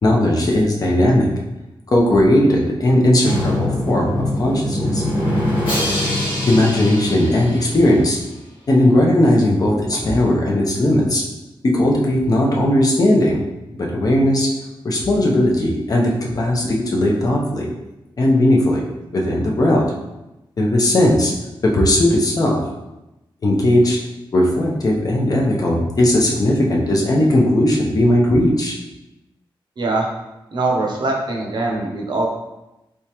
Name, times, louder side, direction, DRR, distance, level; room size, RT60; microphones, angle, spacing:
voice 1, 0.0-1.2 1.9-5.0 6.5-8.2 8.7-11.2 11.6-13.4 13.7-14.5 14.8-17.7 18.2-18.8 19.1-19.8 20.6-21.3 21.6-22.6 23.4-24.0 24.3-28.7, left 1 dB, 45° left, -2 dB, 0.7 m, -17 dB
Drum, 3.3-8.1, left 1 dB, 85° left, 1.5 m, -23 dB
voice 2, 29.8-30.1 30.5-32.3, right 2 dB, 55° right, 0 dB, 0.7 m, -22 dB
3.5 x 3.3 x 2.9 m, 0.96 s
wide cardioid pair, 140°, 9 cm